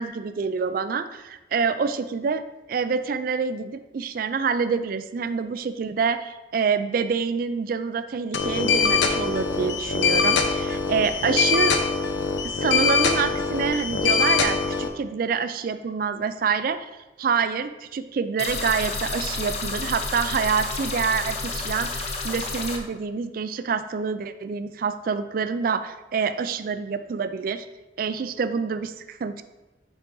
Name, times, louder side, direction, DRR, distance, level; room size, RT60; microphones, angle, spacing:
voice 1, 0.0-2.4 2.7-11.7 12.4-16.8 17.2-27.7 28.0-29.4, right 5 dB, 50° right, 11 dB, 0.3 m, -26 dB
sound 1, 8.3-14.9, left 5 dB, 75° left, 0.6 m, -23 dB
sound 2, 18.4-22.8, left 3 dB, 35° left, 0.7 m, -30 dB
7.2 x 4.9 x 3.8 m, 1.1 s
head